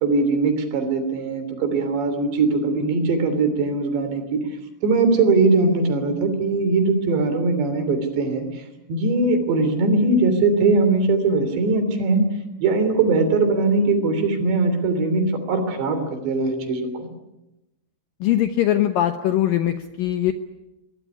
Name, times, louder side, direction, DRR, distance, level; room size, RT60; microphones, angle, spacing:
voice 1, 0.0-4.4 4.8-8.5 8.9-12.3 12.6-17.1, right 3 dB, 70° right, 9 dB, 5.3 m, -20 dB
voice 2, 18.2-20.3, left 12 dB, 75° left, 8 dB, 2.0 m, -21 dB
22.5 x 21.5 x 9.7 m, 0.93 s
omnidirectional pair, 5.3 m